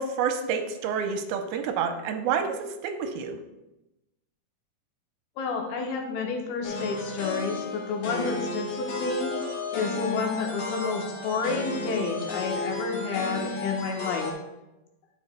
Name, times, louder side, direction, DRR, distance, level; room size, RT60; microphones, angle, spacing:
voice 1, 0.0-2.5 2.8-3.4, right 6 dB, 85° right, 5 dB, 2.5 m, -28 dB
voice 2, 5.4-9.3 9.7-14.3, left 4 dB, 90° left, 1 dB, 3.0 m, -30 dB
sound 1, 6.6-14.3, left 2 dB, 60° left, 1.6 m, -33 dB
11.0 x 6.9 x 2.2 m, 0.95 s
omnidirectional pair, 4.4 m